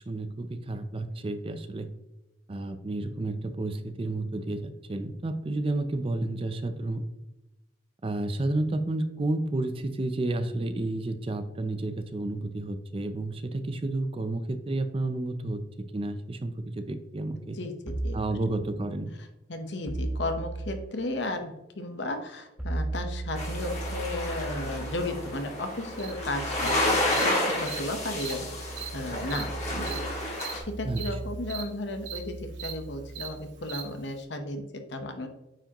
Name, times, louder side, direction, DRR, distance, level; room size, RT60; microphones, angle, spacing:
voice 1, 0.0-1.9 2.5-7.0 8.0-15.6 15.9-17.6 18.1-19.1 30.8-31.0, right 2 dB, 30° right, 9 dB, 0.4 m, -31 dB
voice 2, 17.5-18.4 19.5-28.5 28.9-35.3, left 2 dB, 65° left, 6 dB, 1.0 m, -35 dB
sound 1, 17.9-18.3 19.9-20.8 22.6-33.9, right 2 dB, 5° right, 1.2 m, -37 dB
sound 2, 23.4-30.6, left 1 dB, 35° left, 1.7 m, -31 dB
Cricket, 26.0-26.1 26.6-26.7 27.1-27.2 27.7-27.8 28.2-28.3 28.8-28.9 29.3-29.4 29.9-30.0 30.3-30.5 31.0-31.1 31.4-31.6 32.0-32.2 32.5-32.7 33.1-33.3 33.7-33.8, right 9 dB, 75° right, 1.2 m, -38 dB
8.9 x 4.8 x 2.9 m, 0.96 s
head